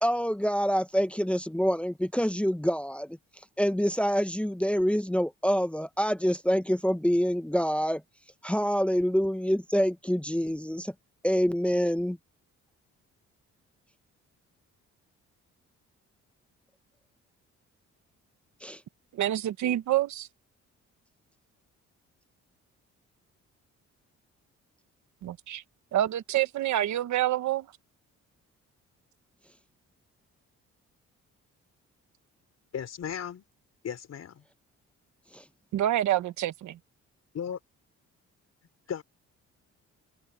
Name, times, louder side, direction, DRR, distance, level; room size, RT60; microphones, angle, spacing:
voice 1, 0.0-3.2 3.6-8.0 8.4-10.9 11.2-12.2 18.6-18.8 35.3-35.4, equal, 5° left, 1.0 m, -26 dB
voice 2, 19.1-20.3 25.2-25.6 25.9-27.6 35.7-36.8, right 13 dB, 70° right, 1.2 m, -27 dB
voice 3, 32.7-33.4 33.8-34.4 37.3-37.6 38.9-39.0, left 8 dB, 55° left, 4.1 m, -35 dB
cardioid pair, 90°, 30 cm